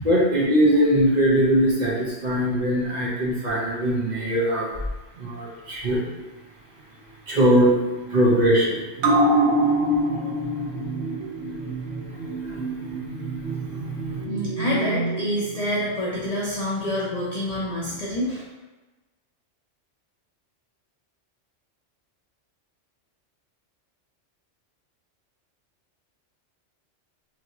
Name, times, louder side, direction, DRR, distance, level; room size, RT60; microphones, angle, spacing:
voice 1, 0.0-4.7 5.2-6.1 7.3-7.7 8.1-8.8 12.5-12.6 13.9-14.2, equal, 40° right, -6 dB, 0.8 m, -21 dB
sound 1, 9.0-15.9 16.2-16.3, right 1 dB, 80° right, 1.0 m, -25 dB
voice 2, 14.3-18.4, equal, 55° left, -5 dB, 0.4 m, -27 dB
3.1 x 2.7 x 2.6 m, 1.2 s
omnidirectional pair, 1.2 m